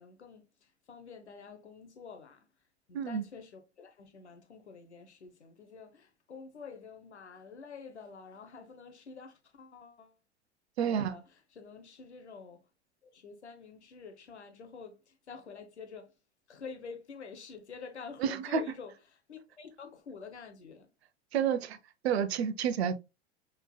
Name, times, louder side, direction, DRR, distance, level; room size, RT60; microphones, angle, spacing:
voice 1, 0.0-2.5 2.9-10.2 10.8-12.6 13.0-16.1 16.5-20.9, left 5 dB, 85° left, 1.0 m, -48 dB
voice 2, 10.8-11.2 18.2-18.6 21.3-21.8 22.0-22.9, right 7 dB, 70° right, 0.9 m, -29 dB
6.1 x 3.9 x 2.2 m
figure-of-eight pair, 85°, 33 cm